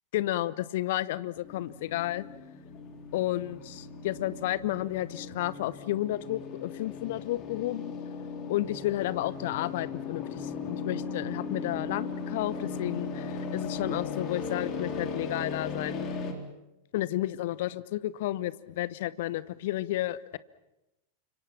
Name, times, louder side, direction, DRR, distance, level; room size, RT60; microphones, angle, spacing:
voice 1, 0.1-2.2 3.1-8.0 8.5-16.1 16.9-20.4, left 15 dB, 55° left, 17 dB, 1.0 m, -32 dB
sound 1, 1.4-16.3, left 5 dB, 35° left, 4.1 m, -37 dB
29.5 x 26.0 x 5.9 m, 0.93 s
figure-of-eight pair, 90°, 0 cm